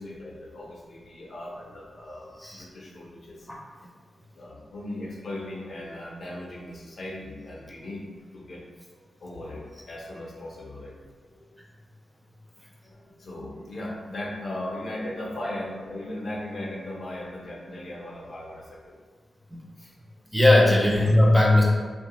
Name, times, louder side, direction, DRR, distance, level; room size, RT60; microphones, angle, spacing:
voice 1, 0.0-3.5 4.4-8.1 8.3-8.6 8.9-11.0 11.3-11.5 12.8-18.9 19.8-19.9 20.8-21.1, left 1 dB, 60° left, -3 dB, 0.5 m, -38 dB
voice 2, 20.3-21.6, left 1 dB, ahead, -3 dB, 0.4 m, -18 dB
2.7 x 2.0 x 2.9 m, 1.5 s
wide cardioid pair, 100°, 0 cm